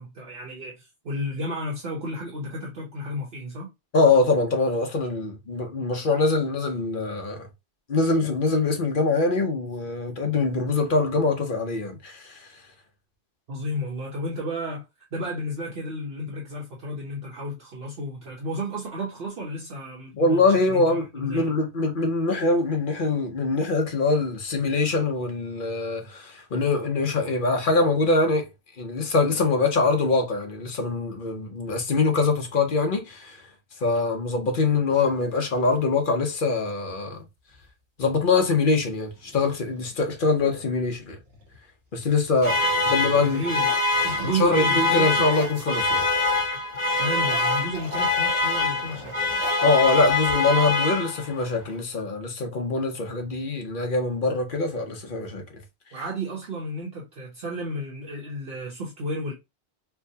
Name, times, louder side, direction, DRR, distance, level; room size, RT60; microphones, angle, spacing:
voice 1, 0.0-3.7 13.5-14.8 15.1-20.4 20.7-21.0 21.3-21.5 43.2-43.7 44.0-45.3 46.8-49.1 55.9-59.3, equal, 60° right, 1.1 m, -32 dB
voice 2, 3.9-7.5 7.9-12.6 20.2-28.5 28.8-33.4 33.8-37.3 38.0-41.2 41.9-42.6 42.9-43.4 44.2-46.0 49.6-55.4, left 3 dB, 50° left, 0.9 m, -23 dB
sound 1, 34.9-35.8 37.5-37.7 38.0-38.5 39.0-40.5 41.2-41.6 41.9-46.5 46.7-50.7, right 1 dB, 80° right, 1.4 m, -42 dB
sound 2, 42.4-51.4, left 2 dB, 30° left, 1.2 m, -24 dB
4.5 x 2.1 x 2.7 m
omnidirectional pair, 1.2 m